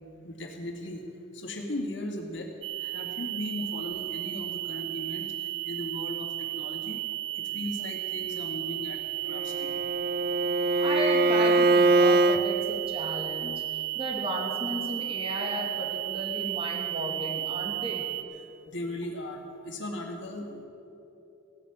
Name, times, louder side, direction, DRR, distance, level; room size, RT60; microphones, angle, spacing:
voice 1, 0.2-1.0 1.3-2.5 2.8-7.0 7.4-9.8 18.7-20.6, left 1 dB, 65° left, 2 dB, 2.2 m, -37 dB
sound 1, 2.6-18.2, right 17 dB, 80° right, 0.7 m, -34 dB
Bowed string instrument, 9.3-12.4, right 2 dB, 50° right, 0.4 m, -23 dB
voice 2, 10.8-18.0, right 1 dB, 30° right, -1 dB, 2.5 m, -34 dB
17.0 x 8.5 x 8.6 m, 2.7 s
head